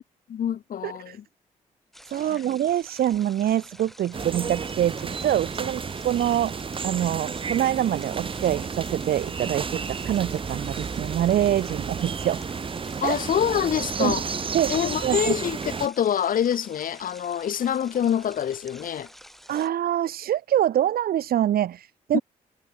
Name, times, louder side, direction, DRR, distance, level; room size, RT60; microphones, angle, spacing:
voice 1, 0.3-1.2 2.3-2.4 13.0-14.2 14.7-19.1 22.1-22.2, left 9 dB, 60° left, 0.9 m, -26 dB
voice 2, 0.8-1.2 2.1-6.6 6.8-12.4 13.0-13.2 14.0-14.2 14.5-14.7 15.0-15.3 19.5-22.2, right 11 dB, 65° right, 1.0 m, -25 dB
sound 1, 1.9-19.7, equal, ahead, 4.3 m, -49 dB
sound 2, 4.1-15.9, right 5 dB, 30° right, 0.7 m, -32 dB
hypercardioid pair, 45°, 17 cm